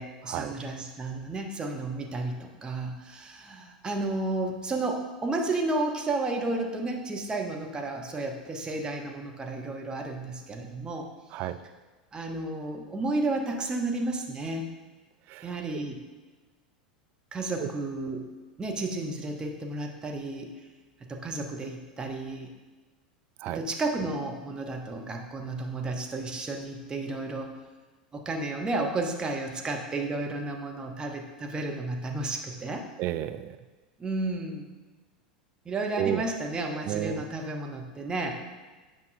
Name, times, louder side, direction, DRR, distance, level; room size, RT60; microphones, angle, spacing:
voice 1, 0.0-11.1 12.1-14.7 15.4-16.0 17.3-18.3 18.6-20.5 21.1-22.5 23.5-27.6 28.1-32.8 34.0-34.7 35.6-38.4, right 2 dB, 20° right, 2 dB, 0.9 m, -32 dB
voice 2, 33.0-33.6 36.0-36.3 36.9-37.2, right 11 dB, 40° right, 11 dB, 0.3 m, -31 dB
8.3 x 5.2 x 2.6 m, 1.3 s
figure-of-eight pair, 85°, 5 cm